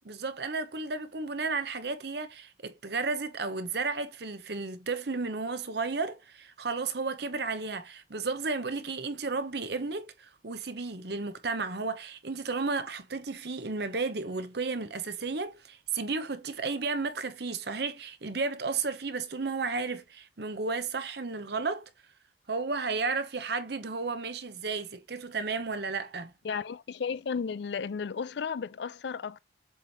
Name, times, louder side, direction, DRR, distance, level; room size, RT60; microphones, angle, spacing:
voice 1, 0.0-21.9 22.5-26.3, right 4 dB, 60° right, 0.9 m, -33 dB
voice 2, 26.4-29.4, left 6 dB, 65° left, 0.4 m, -34 dB
7.6 x 3.3 x 4.1 m
head